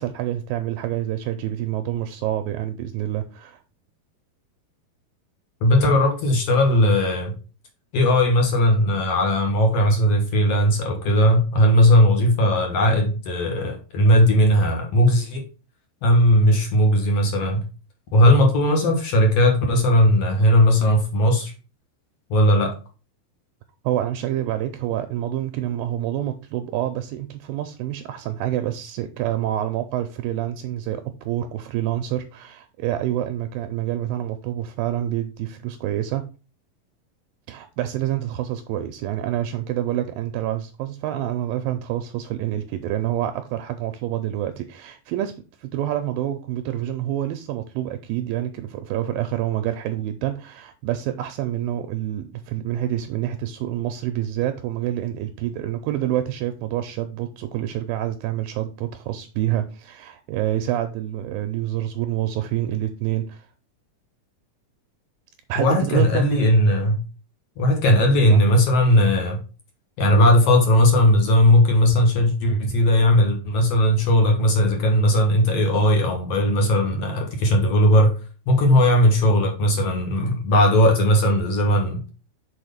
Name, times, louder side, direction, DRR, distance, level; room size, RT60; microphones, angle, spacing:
voice 1, 0.0-3.6 18.9-19.0 23.8-36.2 37.5-63.5 65.5-66.4 68.3-68.5, right 12 dB, 80° right, 2.1 m, -27 dB
voice 2, 5.6-7.3 7.9-15.4 16.0-17.6 18.1-21.5 22.3-22.7 65.6-67.0 67.6-69.4 70.0-78.1 78.5-82.1, left 1 dB, 65° left, 1.6 m, -18 dB
6.3 x 4.4 x 5.0 m
omnidirectional pair, 4.5 m